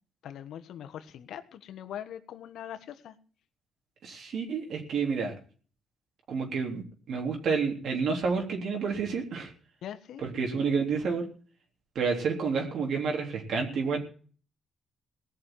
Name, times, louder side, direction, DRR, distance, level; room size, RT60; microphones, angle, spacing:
voice 1, 0.2-3.1 9.8-10.2, left 10 dB, 75° left, 9 dB, 1.4 m, -42 dB
voice 2, 4.0-5.3 6.3-9.5 10.2-11.3 12.0-14.0, right 5 dB, 65° right, 1 dB, 3.6 m, -29 dB
18.0 x 6.6 x 9.1 m, 0.42 s
cardioid pair, 90°, 0 cm